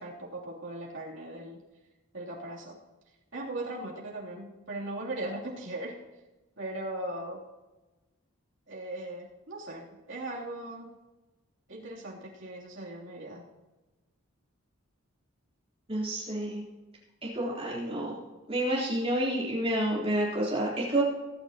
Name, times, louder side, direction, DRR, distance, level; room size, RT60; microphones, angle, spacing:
voice 1, 0.0-1.6 2.1-2.8 3.3-6.0 6.6-7.4 8.7-10.9 11.7-13.5, right 1 dB, 60° right, -4 dB, 3.1 m, -38 dB
voice 2, 15.9-16.6 17.2-18.2 18.5-21.0, right 1 dB, 25° right, -5 dB, 3.6 m, -29 dB
19.0 x 9.9 x 2.9 m, 1.1 s
head